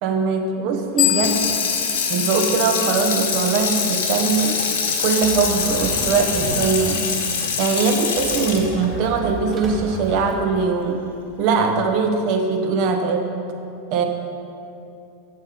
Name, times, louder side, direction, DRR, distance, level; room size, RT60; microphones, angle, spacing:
voice 1, 0.0-1.5 2.1-4.6 5.0-7.0 7.6-11.1 11.4-13.3 13.9-14.0, right 5 dB, 55° right, 4 dB, 1.3 m, -21 dB
Water tap faucet / Sink (filling or washing), 1.0-10.2 10.6-10.7, left 5 dB, 80° left, 1.7 m, -24 dB
sound 1, 1.0-3.5, left 14 dB, 45° left, 0.6 m, -26 dB
sound 2, 5.2-7.0 8.1-11.0, right 2 dB, 35° right, 1.8 m, -33 dB
8.0 x 7.8 x 6.9 m, 2.7 s
hypercardioid pair, 95°, 0 cm